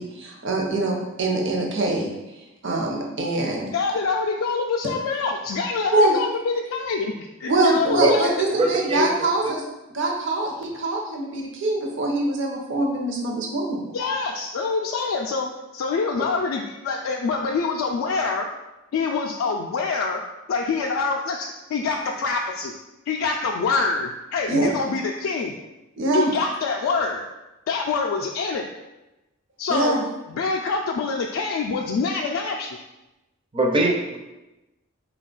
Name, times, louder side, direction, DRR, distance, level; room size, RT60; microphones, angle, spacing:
voice 1, 0.0-2.1 2.6-3.7 5.9-6.2 7.5-9.6 9.9-13.8 24.5-24.7 26.0-26.3 29.7-30.0, right 2 dB, 65° right, -1 dB, 0.7 m, -23 dB
voice 2, 3.6-8.3 13.9-18.5 18.9-22.7 23.1-25.6 26.1-27.3 27.7-28.7 29.6-30.0 30.3-32.8, left 4 dB, 75° left, 1 dB, 0.3 m, -25 dB
voice 3, 8.5-9.5 16.2-16.3 33.5-34.2, right 2 dB, 25° right, 2 dB, 0.4 m, -22 dB
4.2 x 2.3 x 3.7 m, 1.0 s
head